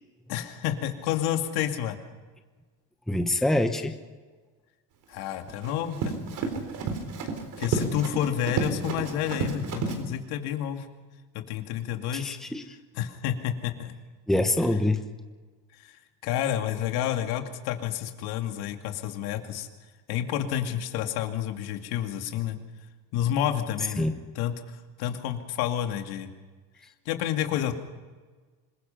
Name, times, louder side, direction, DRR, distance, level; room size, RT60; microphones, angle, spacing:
voice 1, 0.3-2.0 5.1-6.2 7.6-10.9 11.3-12.4 12.9-13.9 15.7-19.7 20.1-22.6 23.1-24.1 24.4-26.3 27.1-27.7, left 10 dB, 75° left, 5 dB, 2.5 m, -30 dB
voice 2, 3.1-3.9 12.1-12.6 14.3-15.0 24.0-24.2, left 1 dB, ahead, 6 dB, 0.9 m, -25 dB
Run, 5.2-10.0, right 4 dB, 55° right, 3.9 m, -31 dB
26.0 x 21.5 x 5.8 m, 1.4 s
cardioid pair, 155°, 37 cm